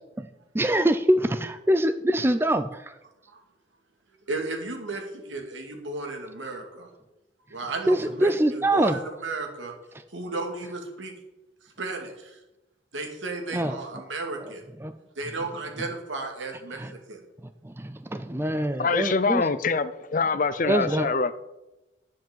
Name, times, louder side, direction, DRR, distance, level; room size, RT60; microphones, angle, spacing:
voice 1, 0.5-2.8 7.9-8.9 13.5-13.8 14.8-14.9 16.8-16.9 17.6-19.4 20.6-21.1, right 1 dB, 10° right, 0.4 m, -24 dB
voice 2, 4.3-6.9 7.5-9.7 10.1-11.1 11.8-12.4 12.9-14.6 15.2-16.8 17.1-17.2, right 3 dB, 85° right, 2.4 m, -34 dB
voice 3, 18.8-21.3, left 4 dB, 45° left, 0.6 m, -24 dB
10.5 x 7.5 x 7.3 m
head